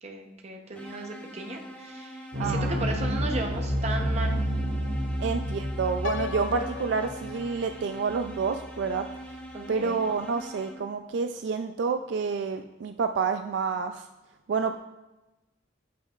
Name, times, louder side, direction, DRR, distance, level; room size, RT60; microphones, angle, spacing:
voice 1, 0.0-4.4 5.0-5.3 9.5-10.0, right 2 dB, 35° right, 2 dB, 0.8 m, -36 dB
sound 1, 0.7-11.1, right 1 dB, 10° left, 0.7 m, -43 dB
sound 2, 2.3-8.8, equal, 85° right, 1.7 m, -30 dB
voice 2, 2.4-2.8 5.2-9.1 9.7-14.0 14.5-14.8, right 5 dB, 65° right, 7 dB, 0.3 m, -29 dB
Piano, 6.0-8.0, left 7 dB, 85° left, 0.4 m, -37 dB
8.3 x 6.4 x 2.4 m, 1.1 s
head